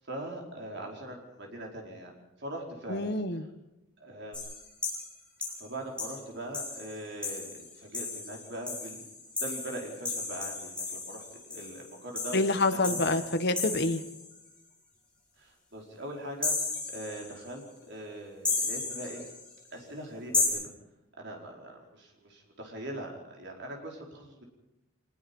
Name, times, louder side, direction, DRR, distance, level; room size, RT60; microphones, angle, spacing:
voice 1, 0.1-2.1 2.4-3.1 4.0-4.6 5.6-9.0 9.4-12.5 12.7-13.2 15.4-16.5 16.9-19.2 19.7-20.6 21.2-24.4, right 1 dB, 50° right, 0 dB, 4.9 m, -41 dB
voice 2, 2.9-3.5 12.3-14.0, left 2 dB, 50° left, 8 dB, 1.4 m, -27 dB
sound 1, 4.3-5.1 5.4-5.6 6.0-6.1 6.5-14.3 16.4-17.5 18.4-19.5 20.3-20.5, left 3 dB, 5° left, 6.1 m, -34 dB
24.5 x 20.5 x 5.5 m, 0.95 s
head